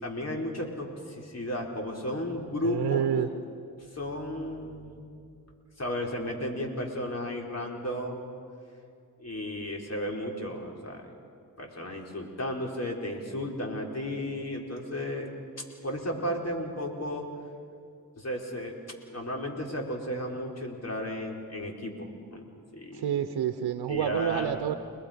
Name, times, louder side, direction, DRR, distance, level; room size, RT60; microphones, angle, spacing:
voice 1, 0.0-3.1 3.9-5.0 5.8-8.3 9.2-11.1 11.6-15.3 15.8-17.3 18.1-18.8 19.1-22.5 22.7-23.2 23.9-24.6, left 1 dB, 40° left, 0 dB, 4.7 m, -34 dB
voice 2, 2.6-3.3 22.9-24.8, right 9 dB, 85° right, 9 dB, 1.0 m, -28 dB
30.0 x 20.0 x 5.3 m, 2.4 s
supercardioid pair, 50°, 38 cm